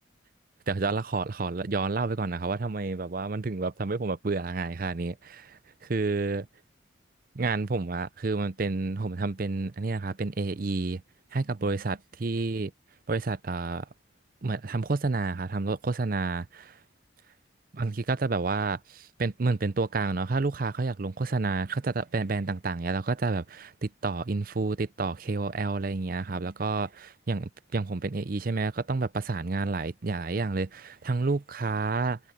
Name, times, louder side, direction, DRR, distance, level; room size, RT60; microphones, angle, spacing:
voice 1, 0.7-6.5 7.3-11.0 11.3-12.7 13.1-13.9 14.4-16.8 17.8-32.2, right 3 dB, 45° right, 0.5 m, -29 dB
head